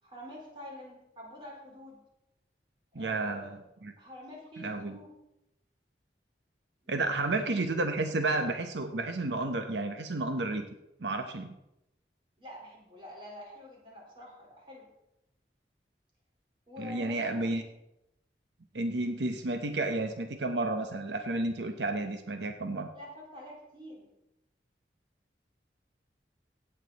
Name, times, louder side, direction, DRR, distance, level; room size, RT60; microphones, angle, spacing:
voice 1, 0.0-2.0 2.9-3.6 4.0-5.1 6.8-7.1 12.4-14.9 16.7-17.6 22.9-24.1, left 1 dB, 30° right, -3 dB, 4.3 m, -47 dB
voice 2, 2.9-3.9 4.6-5.0 6.9-10.7 11.0-11.5 16.8-17.6 18.7-22.9, right 2 dB, 85° right, 6 dB, 0.9 m, -31 dB
17.0 x 8.5 x 4.1 m, 0.89 s
head